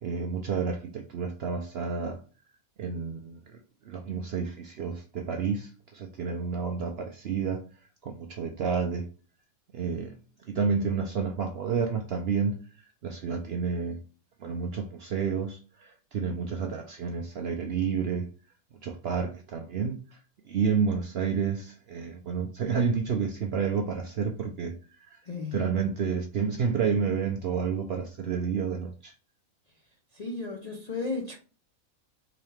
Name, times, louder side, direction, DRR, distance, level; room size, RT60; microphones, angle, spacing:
voice 1, 0.0-2.2 2.8-3.6 3.9-7.6 8.0-9.1 9.7-10.1 10.5-12.6 13.0-14.0 14.4-18.3 18.8-20.0 20.5-24.8 25.1-25.2 25.5-29.1, right 6 dB, 65° right, 0.6 m, -30 dB
voice 2, 25.2-25.6 30.1-31.4, left 3 dB, 50° left, 0.4 m, -34 dB
4.0 x 2.8 x 3.2 m
omnidirectional pair, 1.5 m